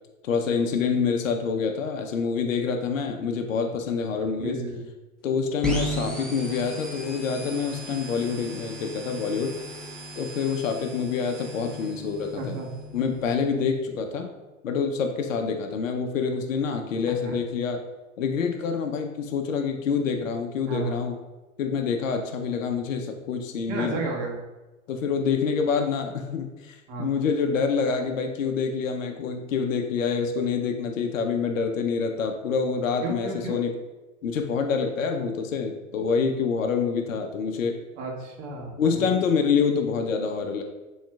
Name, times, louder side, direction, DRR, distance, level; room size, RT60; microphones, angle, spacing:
voice 1, 0.2-4.6 5.2-9.6 10.2-12.6 12.9-14.3 14.6-17.8 18.2-21.1 21.6-24.0 24.9-33.7 34.2-37.8 38.8-40.6, left 5 dB, 80° left, 4 dB, 0.7 m, -26 dB
voice 2, 4.4-4.8 12.4-12.7 17.1-17.4 20.7-21.0 23.7-24.3 26.9-27.1 33.0-33.6 38.0-39.1, right 3 dB, 45° right, 0 dB, 1.4 m, -32 dB
sound 1, 5.6-13.2, equal, ahead, 0.9 m, -35 dB
7.1 x 3.2 x 2.4 m, 1.1 s
hypercardioid pair, 100°, 39 cm